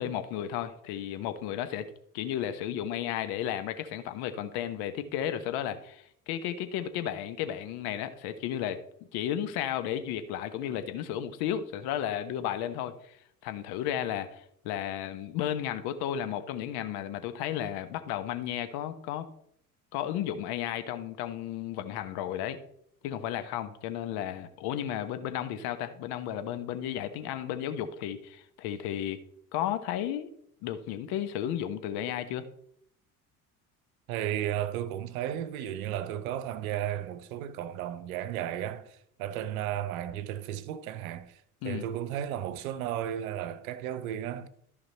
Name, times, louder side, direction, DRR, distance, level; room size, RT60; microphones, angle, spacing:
voice 1, 0.0-8.8 9.1-19.3 19.9-22.6 23.0-29.2 29.5-30.3 30.6-32.4 41.6-41.9, left 10 dB, 55° left, 1.1 m, -33 dB
voice 2, 34.1-44.5, right 11 dB, 65° right, 0.9 m, -34 dB
14.0 x 5.1 x 4.1 m
figure-of-eight pair, 60°, 45 cm